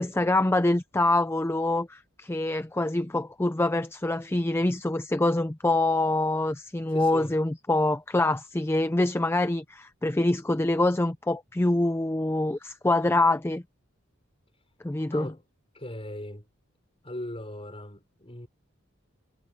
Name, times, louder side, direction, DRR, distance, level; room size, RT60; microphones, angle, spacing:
voice 1, 0.0-13.6 14.8-15.3, left 2 dB, 10° left, 0.5 m, -25 dB
voice 2, 6.9-7.4 15.1-15.4 15.7-16.5 17.0-18.5, left 1 dB, 25° left, 5.1 m, -39 dB
head